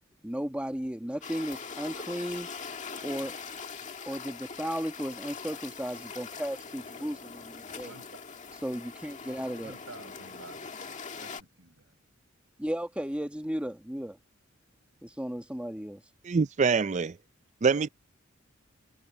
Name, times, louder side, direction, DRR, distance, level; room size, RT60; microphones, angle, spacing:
voice 1, 0.2-2.5 3.0-3.4 4.1-7.9 8.6-9.7 12.6-14.2 15.0-16.0, equal, 5° right, 1.3 m, -35 dB
sound 1, 1.2-11.4, left 5 dB, 35° left, 1.8 m, -42 dB
voice 2, 7.7-8.1 9.6-11.9, right 3 dB, 70° right, 7.8 m, -51 dB
voice 3, 16.2-17.1 17.6-17.9, right 5 dB, 35° right, 0.4 m, -24 dB
head